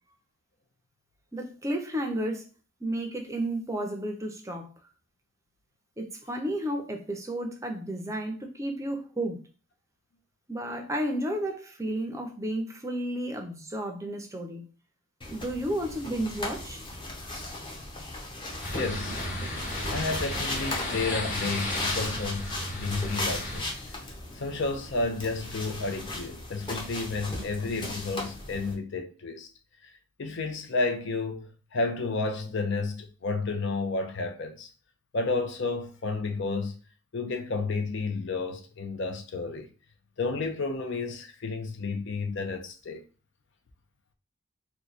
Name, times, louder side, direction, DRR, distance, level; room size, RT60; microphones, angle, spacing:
voice 1, 1.3-2.5 2.8-4.7 6.0-9.4 10.5-14.6 15.3-16.8, right 1 dB, 15° right, 0.5 m, -32 dB
sound 1, 15.2-28.7, left 2 dB, 25° left, 0.8 m, -37 dB
sound 2, 18.6-23.6, left 1 dB, 40° left, 1.3 m, -34 dB
voice 2, 18.7-19.2 19.9-24.0 24.3-29.5 29.8-29.9 30.2-34.7 35.1-36.7 37.1-39.7 40.2-43.0, left 3 dB, 65° left, 0.6 m, -31 dB
3.0 x 2.2 x 3.9 m
head